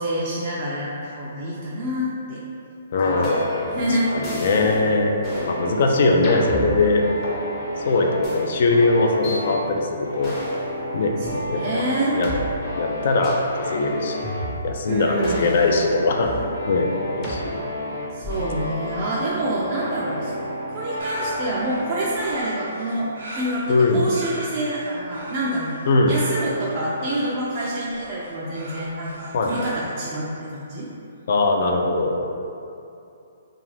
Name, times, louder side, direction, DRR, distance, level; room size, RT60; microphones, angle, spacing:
voice 1, 0.0-2.4 3.0-3.4 3.6-4.2 6.0-6.4 11.2-12.2 14.8-15.5 18.1-20.3 20.7-25.7 26.1-30.9, right 1 dB, 35° right, -7 dB, 0.3 m, -27 dB
voice 2, 2.9-5.1 5.5-7.0 7.9-10.3 10.9-11.1 11.5-11.8 12.1-12.3 12.8-14.3 14.6-16.3 16.7-17.6 19.5-19.6 23.7-24.0 25.9-26.1 29.3-29.7 31.3-32.2, left 3 dB, 55° left, 2 dB, 0.3 m, -21 dB
sound 1, 3.0-22.2, equal, 85° left, 0.7 m, -32 dB
sound 2, 3.2-3.7 4.2-4.8 5.2-5.5 6.2-7.4 8.2-8.4 9.2-9.4 10.2-10.7 11.2-11.3 12.2-12.4 13.2-13.5 14.2-14.8 15.2-16.5 17.2-17.4 18.2-18.6, equal, 20° left, 0.6 m, -32 dB
sound 3, 21.0-29.7, right 1 dB, 80° right, 0.7 m, -39 dB
2.4 x 2.3 x 3.2 m, 2.7 s
hypercardioid pair, 150°, 0 cm